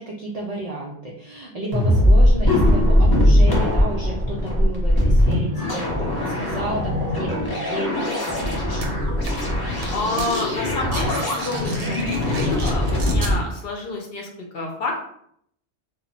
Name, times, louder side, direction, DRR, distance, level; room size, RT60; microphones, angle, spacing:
voice 1, 0.0-9.0, right 1 dB, 75° right, -3 dB, 0.3 m, -32 dB
sound 1, 1.7-13.3, left 1 dB, 30° left, 0.4 m, -20 dB
sound 2, 8.8-8.9 9.3-9.5 9.8-10.5 10.7-13.3, right 2 dB, 90° right, 0.9 m, -34 dB
voice 2, 9.9-14.3 14.5-15.0, left 2 dB, 60° left, 1 dB, 0.7 m, -29 dB
2.1 x 2.1 x 3.8 m, 0.69 s
omnidirectional pair, 1.2 m